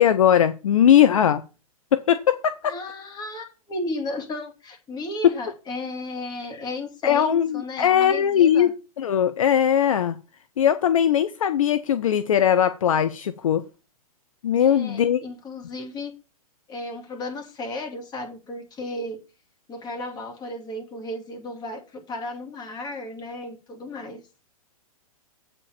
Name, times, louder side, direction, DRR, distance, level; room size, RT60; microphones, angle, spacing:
voice 1, 0.0-1.4 1.9-2.7 5.2-5.4 7.0-10.2 10.6-13.6 14.4-15.2, left 9 dB, 60° left, 0.7 m, -19 dB
voice 2, 2.6-8.7 14.6-16.1 16.7-19.2 19.7-24.2, left 2 dB, 20° left, 2.3 m, -34 dB
8.3 x 4.4 x 6.8 m
figure-of-eight pair, 110°, 19 cm